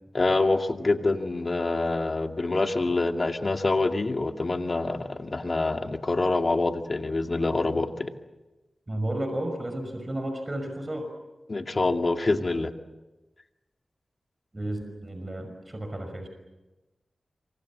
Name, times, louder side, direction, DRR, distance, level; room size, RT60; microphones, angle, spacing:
voice 1, 0.1-8.1 11.5-12.7, left 2 dB, 50° left, 5 dB, 2.3 m, -26 dB
voice 2, 8.9-11.1 14.5-16.3, right 1 dB, 30° right, 6 dB, 5.8 m, -32 dB
27.0 x 24.5 x 7.5 m, 1.1 s
cardioid pair, 50°, 0 cm